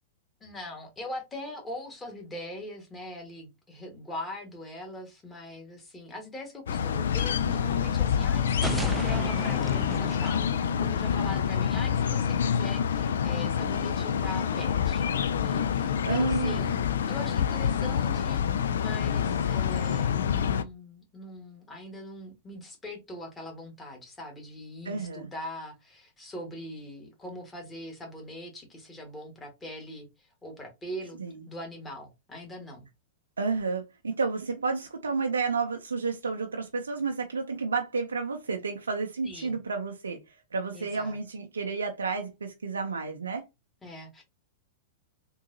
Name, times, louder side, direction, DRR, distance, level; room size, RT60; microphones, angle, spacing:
voice 1, 0.4-10.5 10.8-16.8 17.1-18.4 18.8-30.1 30.4-31.2 31.5-32.9 39.2-39.6 40.7-41.2 43.8-44.2, left 1 dB, 15° left, 1.4 m, -41 dB
sound 1, 6.7-20.6, left 8 dB, 65° left, 0.3 m, -27 dB
sound 2, 8.5-11.3, right 2 dB, 10° right, 0.4 m, -35 dB
voice 2, 16.0-16.8 24.8-25.3 31.2-31.4 33.4-43.4, right 4 dB, 75° right, 0.5 m, -31 dB
3.7 x 2.7 x 2.6 m
figure-of-eight pair, 100°, 0 cm